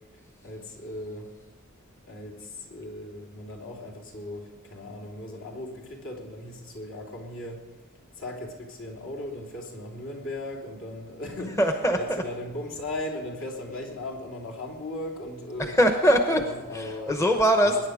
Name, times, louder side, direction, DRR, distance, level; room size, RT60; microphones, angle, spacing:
voice 1, 0.4-1.3 2.0-7.6 8.1-11.6 11.9-15.8 16.3-17.1 17.6-17.9, left 1 dB, 65° left, -2 dB, 3.2 m, -37 dB
voice 2, 11.6-12.2 15.6-16.4 16.7-17.9, equal, 15° left, 5 dB, 0.9 m, -22 dB
22.0 x 10.0 x 5.0 m, 1.2 s
head